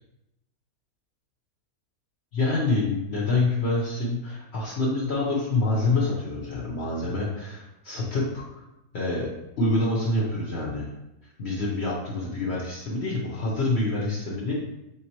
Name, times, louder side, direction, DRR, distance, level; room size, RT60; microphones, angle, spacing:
voice 1, 2.3-8.6 8.9-9.3 9.6-10.9 11.4-14.5, left 2 dB, 55° left, -5 dB, 0.9 m, -26 dB
4.3 x 3.7 x 2.9 m, 0.93 s
omnidirectional pair, 1.6 m